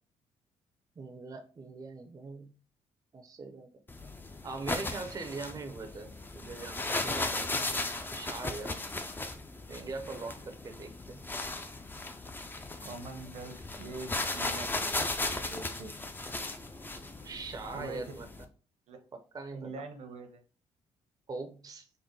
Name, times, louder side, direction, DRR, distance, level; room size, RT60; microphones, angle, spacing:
voice 1, 1.0-2.5 3.1-3.7 4.0-4.1 4.4-7.5 8.2-8.7 9.7-11.2 17.2-18.3 19.1-19.7 21.3-21.9, right 3 dB, 30° right, 5 dB, 0.6 m, -41 dB
sound 1, 3.9-18.4, left 2 dB, 15° left, 0.5 m, -36 dB
voice 2, 12.8-14.7 15.5-15.9 17.7-18.0 18.9-19.0 19.5-20.4, right 3 dB, 65° right, 7 dB, 0.8 m, -43 dB
3.8 x 2.1 x 3.7 m, 0.36 s
cardioid pair, 90°, 12 cm